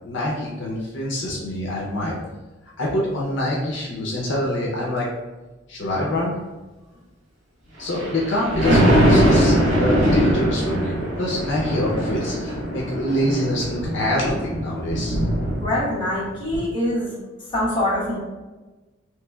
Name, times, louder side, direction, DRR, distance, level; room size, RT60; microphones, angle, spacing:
voice 1, 0.0-2.1 2.8-5.1 5.7-6.3 7.8-14.4 14.6-15.2, left 1 dB, 65° left, -4 dB, 0.6 m, -25 dB
Thunder, 7.8-16.1 16.5-16.6, equal, 75° right, 1.2 m, -21 dB
voice 2, 15.6-17.1 17.5-18.2, left 1 dB, 25° left, -8 dB, 1.1 m, -24 dB
3.1 x 3.1 x 2.2 m, 1.2 s
head